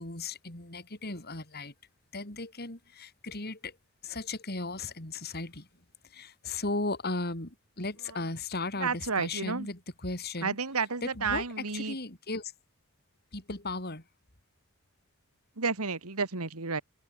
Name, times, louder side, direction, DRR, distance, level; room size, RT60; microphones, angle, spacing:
voice 1, 0.0-1.7 2.1-3.8 4.0-5.7 6.0-10.6 11.0-12.5 13.3-14.0, left 3 dB, 45° left, 3.5 m, -36 dB
voice 2, 8.8-9.7 10.4-12.0 15.6-16.8, right 4 dB, 85° right, 2.1 m, -31 dB
open air
head